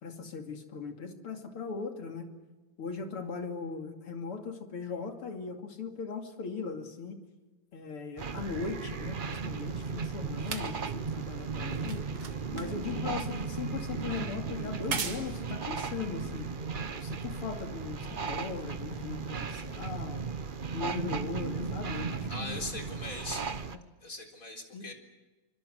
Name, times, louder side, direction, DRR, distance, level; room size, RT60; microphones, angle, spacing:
voice 1, 0.0-2.3 2.8-7.2 7.7-12.0 12.5-16.5 17.0-20.2 20.7-22.6 23.7-23.8 24.7-24.9, left 5 dB, 85° left, 4 dB, 3.4 m, -39 dB
sound 1, 8.2-23.8, right 5 dB, 50° right, 0.6 m, -36 dB
sound 2, 8.6-17.2 18.0-18.1, right 6 dB, 85° right, 3.0 m, -43 dB
voice 2, 22.3-23.5 24.0-24.9, left 2 dB, 40° left, 3 dB, 4.4 m, -40 dB
26.0 x 25.5 x 8.0 m, 1.2 s
omnidirectional pair, 2.4 m